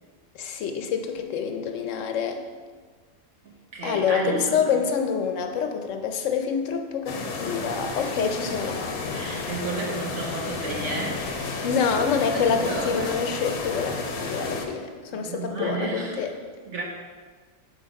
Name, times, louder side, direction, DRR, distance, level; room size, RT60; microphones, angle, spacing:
voice 1, 0.3-2.4 3.8-8.8 11.6-16.3, left 6 dB, 65° left, 6 dB, 1.0 m, -27 dB
voice 2, 3.4-4.8 9.1-11.6 12.3-13.2 15.1-16.3 16.6-16.8, right 3 dB, 60° right, -2 dB, 1.2 m, -32 dB
sound 1, 7.1-14.7, left 3 dB, 90° left, 1.3 m, -32 dB
6.5 x 4.6 x 5.1 m, 1.5 s
omnidirectional pair, 1.5 m